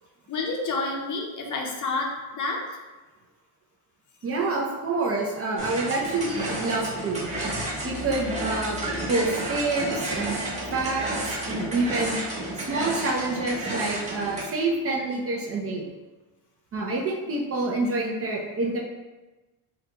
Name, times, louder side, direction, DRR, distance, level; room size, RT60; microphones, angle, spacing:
voice 1, 0.3-2.6, left 3 dB, 45° left, 1 dB, 0.6 m, -29 dB
voice 2, 4.2-7.3 7.8-8.8 9.1-12.2 12.6-15.9 16.7-18.8, right 2 dB, 35° right, -2 dB, 0.5 m, -27 dB
sound 1, 5.6-14.4, right 1 dB, 15° right, 1.1 m, -31 dB
3.8 x 2.2 x 2.8 m, 1.2 s
cardioid pair, 115°, 42 cm